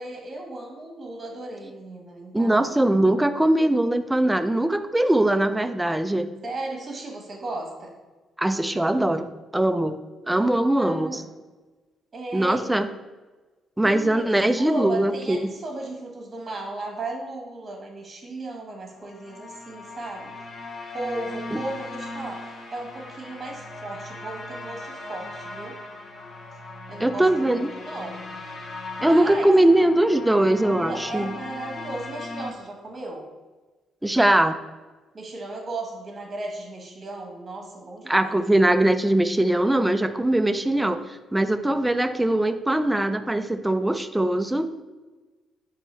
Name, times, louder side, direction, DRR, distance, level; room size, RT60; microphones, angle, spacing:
voice 1, 0.0-2.9 6.4-7.9 10.4-11.3 12.1-12.7 13.8-20.3 20.9-25.8 26.9-28.2 29.0-29.5 30.6-33.3 35.1-38.3, right 2 dB, 35° right, 1 dB, 1.2 m, -35 dB
voice 2, 2.3-6.3 8.4-10.0 10.3-11.2 12.3-12.9 13.8-15.5 21.5-21.6 27.0-27.7 29.0-31.3 34.0-34.6 38.1-44.7, right 1 dB, 10° right, 10 dB, 0.3 m, -21 dB
sound 1, 19.0-32.5, left 2 dB, 40° left, 1.1 m, -38 dB
4.6 x 2.8 x 4.2 m, 1.3 s
cardioid pair, 90°, 0 cm